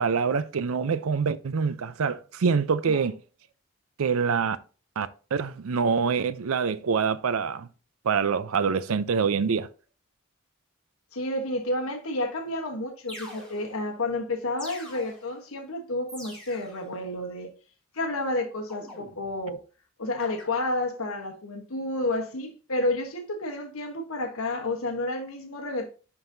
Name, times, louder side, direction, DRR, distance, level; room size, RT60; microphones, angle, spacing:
voice 1, 0.0-3.2 4.0-4.6 5.0-7.7 8.0-9.7, right 5 dB, 70° right, 0.5 m, -25 dB
voice 2, 11.1-17.5 17.9-19.6 20.0-25.9, left 2 dB, 75° left, 1.1 m, -30 dB
sound 1, 12.4-12.5 13.1-13.9 14.6-15.4 16.1-16.9 18.7-19.5 20.2-20.4, left 1 dB, 5° left, 2.8 m, -44 dB
10.5 x 3.9 x 2.7 m
head